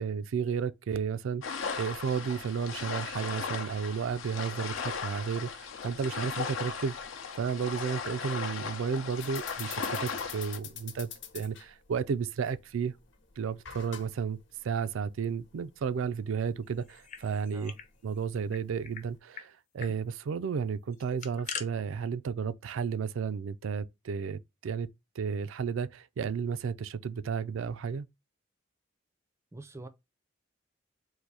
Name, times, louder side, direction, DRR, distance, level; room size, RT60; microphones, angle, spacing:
voice 1, 0.0-6.9 7.3-12.9 13.4-14.4 14.6-17.7 18.0-24.9 25.2-28.1, right 6 dB, 85° right, 0.4 m, -33 dB
sound 1, 1.4-10.6, left 5 dB, 90° left, 0.7 m, -37 dB
sound 2, 9.1-19.2, left 8 dB, 65° left, 1.0 m, -48 dB
sound 3, 16.8-17.9 18.2-18.3 18.5-19.0 19.3-19.5 19.8-20.0 20.9-21.7, left 6 dB, 40° left, 0.6 m, -41 dB
voice 2, 29.5-29.9, right 2 dB, 15° right, 0.4 m, -44 dB
4.0 x 2.6 x 4.6 m
head